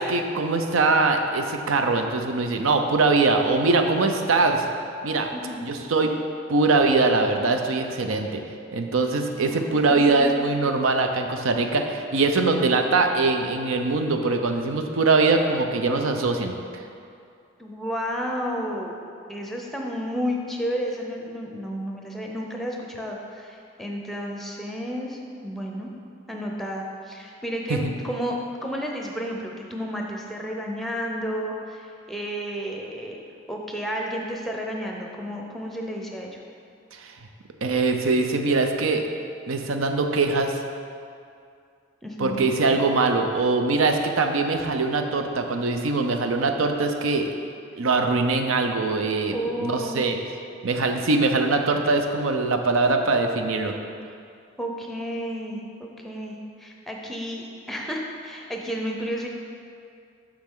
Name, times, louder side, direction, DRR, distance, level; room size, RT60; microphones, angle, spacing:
voice 1, 0.0-4.6 5.0-5.3 5.6-6.1 6.5-8.4 8.7-16.5 27.7-27.8 37.0-37.1 37.6-39.1 39.5-40.6 42.2-47.3 47.8-50.2 50.6-53.7, right 3 dB, 85° right, 5 dB, 0.6 m, -22 dB
voice 2, 5.3-5.6 9.4-10.6 17.6-19.0 19.3-25.9 26.3-33.2 33.5-36.4 42.0-42.5 49.3-50.1 54.6-59.3, equal, ahead, 0 dB, 0.6 m, -32 dB
7.4 x 6.2 x 3.8 m, 2.4 s
head